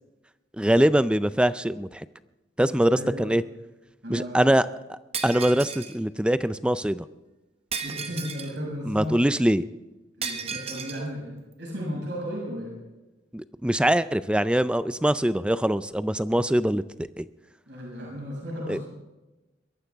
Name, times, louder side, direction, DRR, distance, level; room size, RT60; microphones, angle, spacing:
voice 1, 0.6-2.1 2.6-3.4 4.1-4.7 5.2-7.1 8.8-9.6 13.3-17.3 18.7-18.8, right 1 dB, 5° right, 14 dB, 0.4 m, -23 dB
voice 2, 2.7-3.2 4.0-4.5 7.8-9.1 10.2-12.7 17.7-18.8, equal, 65° right, -4 dB, 6.5 m, -34 dB
Shatter, 5.1-6.0 7.7-8.6 10.2-11.0, right 6 dB, 30° right, 1.0 m, -34 dB
22.5 x 13.5 x 3.5 m, 1.1 s
head